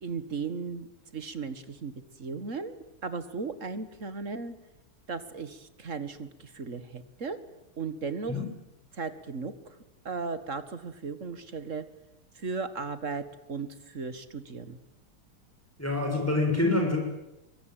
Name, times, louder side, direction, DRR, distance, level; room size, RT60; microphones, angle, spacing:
voice 1, 0.0-0.9 1.1-1.9 2.2-4.6 5.1-7.4 7.8-8.4 8.9-9.8 10.1-11.8 12.4-13.2 13.5-14.8, right 4 dB, 40° right, 11 dB, 1.9 m, -36 dB
voice 2, 15.8-17.0, left 2 dB, 5° left, 1 dB, 6.3 m, -26 dB
25.5 x 23.5 x 9.2 m, 0.92 s
omnidirectional pair, 2.3 m